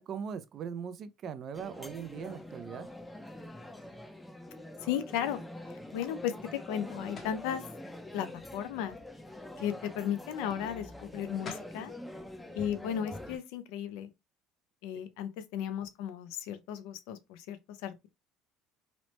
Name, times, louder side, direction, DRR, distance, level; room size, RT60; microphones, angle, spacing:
voice 1, 0.0-2.9, right 7 dB, 50° right, 0.4 m, -40 dB
sound 1, 1.5-13.4, left 1 dB, 10° left, 0.5 m, -45 dB
voice 2, 4.8-5.4 5.9-7.6 8.1-8.3 8.5-9.0 9.6-11.9 12.5-14.1 14.8-17.6 17.8-17.9, left 9 dB, 85° left, 0.5 m, -35 dB
sound 2, 7.1-7.5 11.1-11.2 11.4-11.8, left 5 dB, 45° left, 0.8 m, -43 dB
3.0 x 2.0 x 3.0 m
supercardioid pair, 105°, 0 cm